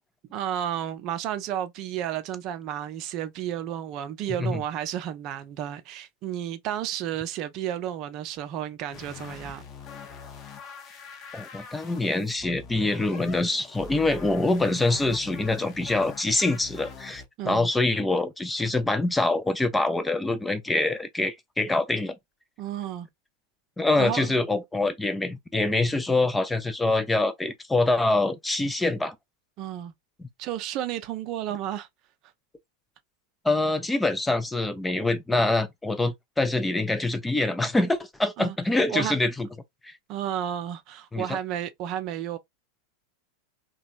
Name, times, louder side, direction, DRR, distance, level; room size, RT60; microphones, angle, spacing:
voice 1, 0.3-9.6 17.4-17.7 22.6-23.1 24.0-24.3 29.6-29.9 30.4-31.9 38.4-38.6 38.9-39.1 40.1-42.4, right 11 dB, 45° right, 0.5 m, -32 dB
sound 1, 8.9-17.3, left 6 dB, 35° left, 0.7 m, -43 dB
voice 2, 11.3-22.1 23.8-29.1 33.4-39.5 39.8-39.9 41.1-41.3, left 2 dB, 10° left, 0.4 m, -25 dB
2.9 x 2.3 x 2.4 m
figure-of-eight pair, 90°, 0 cm